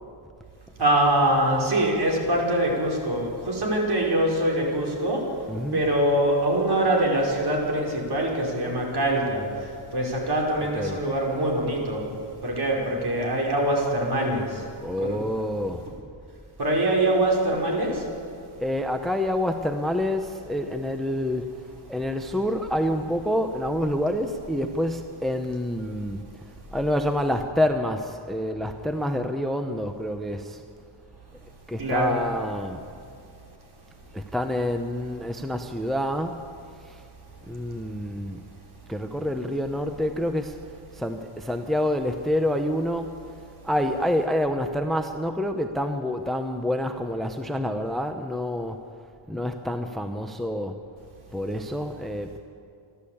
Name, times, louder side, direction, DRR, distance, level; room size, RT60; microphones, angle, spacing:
voice 1, 0.8-5.2 5.7-12.1 12.4-14.6 15.0-15.2 16.6-18.1 31.8-32.2, right 1 dB, 50° right, -1 dB, 5.1 m, -24 dB
voice 2, 5.5-5.8 10.6-11.0 14.8-15.9 18.6-26.2 26.7-30.6 31.7-32.8 34.1-36.5 36.8-37.0 37.5-38.4 38.9-40.6 40.9-43.3 43.6-48.8 49.3-50.8 51.3-52.4, left 1 dB, ahead, 7 dB, 0.8 m, -27 dB
27.5 x 12.5 x 8.6 m, 2.5 s
wide cardioid pair, 155°, 48 cm